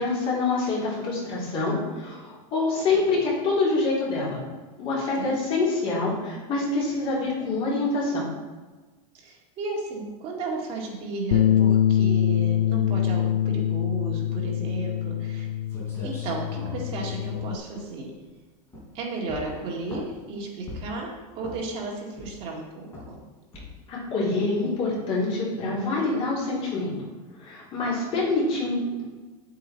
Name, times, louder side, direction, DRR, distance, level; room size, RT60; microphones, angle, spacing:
voice 1, 0.0-4.4 4.8-8.2 23.9-26.9 27.4-29.0, left 3 dB, 30° left, -6 dB, 3.6 m, -26 dB
voice 2, 9.1-15.5 16.0-18.1 18.9-23.2, right 3 dB, 30° right, -2 dB, 2.0 m, -34 dB
Bass guitar, 11.3-17.6, left 10 dB, 60° left, 0.4 m, -24 dB
sound 1, 15.7-18.3 18.7-19.0 19.3-20.2 20.7-21.0 21.4-21.8 22.2-22.6 22.9-23.2 23.5-23.9, left 2 dB, 15° left, 3.7 m, -41 dB
9.1 x 8.6 x 4.5 m, 1.3 s
supercardioid pair, 175°, 19 cm